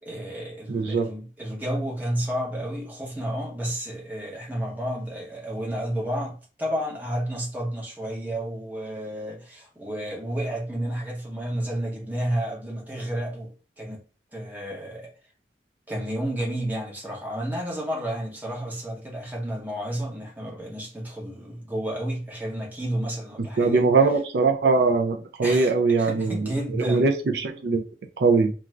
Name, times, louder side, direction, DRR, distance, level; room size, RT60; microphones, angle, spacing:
voice 1, 0.0-13.5 13.8-14.0 14.3-15.1 15.9-23.8 25.4-25.7 26.0-27.1, right 1 dB, 10° right, 0.7 m, -31 dB
voice 2, 0.7-1.1 23.4-27.8 28.2-28.5, right 4 dB, 70° right, 0.4 m, -22 dB
2.5 x 2.3 x 3.1 m
head